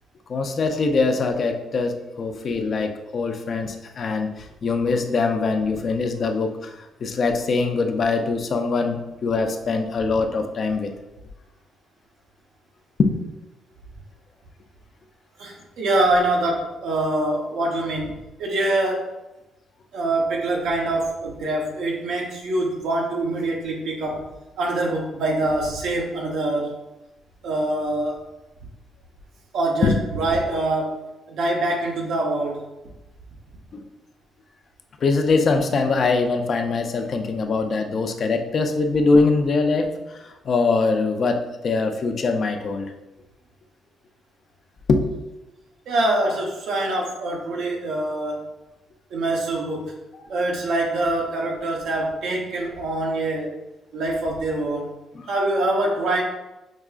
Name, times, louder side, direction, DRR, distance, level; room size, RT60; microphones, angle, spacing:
voice 1, 0.3-10.9 13.0-13.1 29.8-30.0 33.7-33.8 35.0-42.9 44.9-45.1 50.3-50.4 55.1-55.3, left 4 dB, 50° left, 5 dB, 0.4 m, -22 dB
voice 2, 15.4-18.1 18.4-19.1 19.9-24.3 24.6-26.7 27.4-28.2 29.5-32.6 45.9-48.4 49.1-49.9 50.3-53.5 53.9-54.9 55.3-56.2, right 2 dB, 75° right, 0 dB, 0.8 m, -24 dB
4.8 x 2.3 x 2.3 m, 0.99 s
cardioid pair, 90°, 0 cm